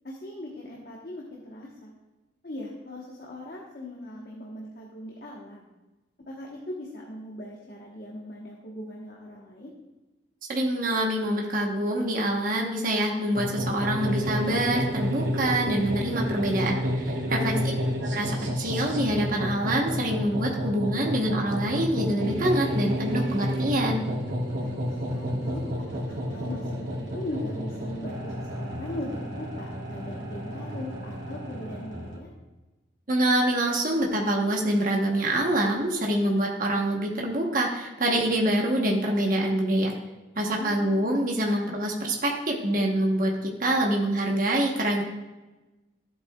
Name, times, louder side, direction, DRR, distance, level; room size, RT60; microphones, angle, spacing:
voice 1, 0.0-1.9 2.4-5.7 6.3-9.7 17.4-17.7 24.6-32.3 40.5-41.0, left 1 dB, 55° left, -2 dB, 1.2 m, -39 dB
voice 2, 10.5-17.5 18.1-18.3 18.6-24.0 33.1-39.9 40.4-45.0, right 1 dB, 45° right, 0 dB, 1.1 m, -25 dB
sound 1, 13.3-32.2, equal, 85° right, 2.7 m, -30 dB
13.5 x 8.2 x 2.4 m, 1.1 s
head